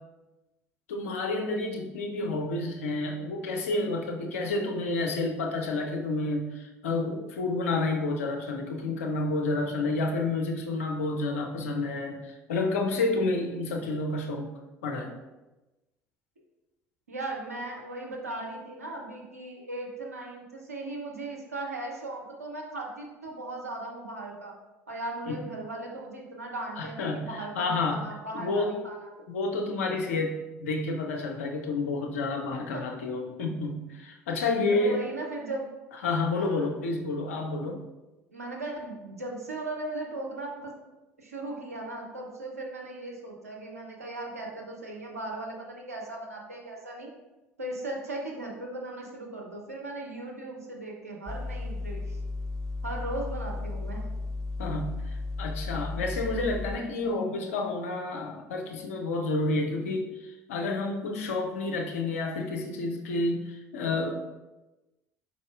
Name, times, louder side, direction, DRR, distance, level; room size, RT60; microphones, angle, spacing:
voice 1, 0.9-14.5 14.8-15.1 25.3-25.4 26.8-28.0 28.3-28.8 29.2-35.0 36.0-37.8 54.6-64.1, left 2 dB, 70° left, 2 dB, 0.6 m, -30 dB
voice 2, 17.1-24.5 24.9-29.1 32.5-32.8 34.7-35.7 36.3-36.7 38.3-40.8 41.2-47.1 47.6-52.2 52.8-54.1, right 2 dB, 85° right, -1 dB, 0.7 m, -38 dB
sound 1, 51.3-56.8, left 3 dB, 5° left, 0.3 m, -34 dB
4.9 x 4.1 x 2.4 m, 1.1 s
figure-of-eight pair, 60°, 8 cm